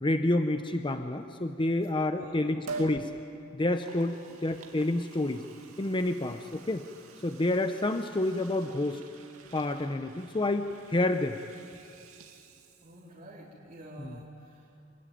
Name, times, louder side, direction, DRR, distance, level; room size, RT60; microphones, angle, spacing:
voice 1, 0.0-3.1 3.5-5.4 5.8-6.9 7.2-9.0 9.5-11.4 14.0-14.2, left 2 dB, 25° left, 7 dB, 0.7 m, -29 dB
voice 2, 2.1-2.6 4.3-4.4 12.8-14.7, right 1 dB, 35° right, -7 dB, 3.8 m, -48 dB
Liquid, 2.7-3.0 3.6-13.2 13.6-13.7, right 4 dB, 85° right, 2.5 m, -47 dB
26.5 x 21.0 x 9.2 m, 2.6 s
head